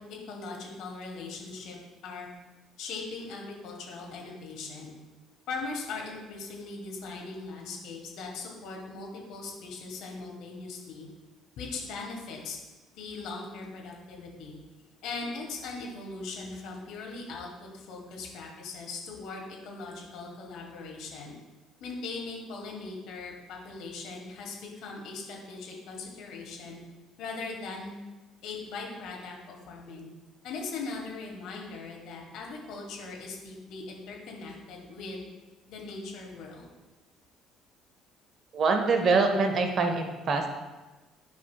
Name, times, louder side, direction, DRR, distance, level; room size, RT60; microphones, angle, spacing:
voice 1, 0.0-1.8 2.0-2.3 2.8-4.9 5.5-11.1 11.6-12.6 12.9-14.6 15.0-21.3 21.8-26.8 27.2-27.9 28.4-30.1 30.4-35.2 35.7-36.7, left 3 dB, 55° left, -1 dB, 1.4 m, -40 dB
voice 2, 38.5-40.5, right 4 dB, 40° right, 5 dB, 0.8 m, -24 dB
12.0 x 4.8 x 2.2 m, 1.2 s
figure-of-eight pair, 50°, 0 cm